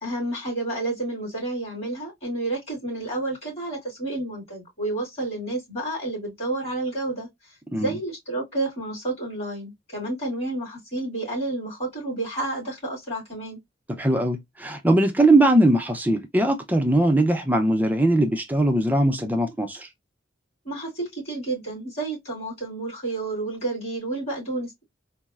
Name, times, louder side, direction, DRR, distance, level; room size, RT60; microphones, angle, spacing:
voice 1, 0.0-7.3 7.7-13.6 20.6-24.9, right 2 dB, 35° left, 2.2 m, -30 dB
voice 2, 13.9-19.9, right 1 dB, 10° right, 0.5 m, -20 dB
3.9 x 2.0 x 2.3 m
head